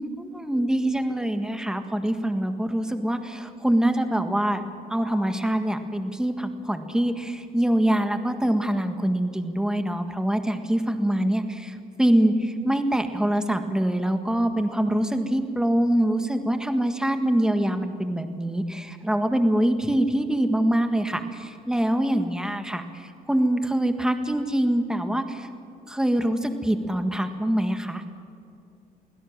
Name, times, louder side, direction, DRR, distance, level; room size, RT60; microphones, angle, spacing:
voice 1, 0.0-4.6 4.9-25.5 25.9-28.0, right 1 dB, 5° right, 7 dB, 1.7 m, -24 dB
23.5 x 16.5 x 7.5 m, 2.6 s
cardioid pair, 110°, 17 cm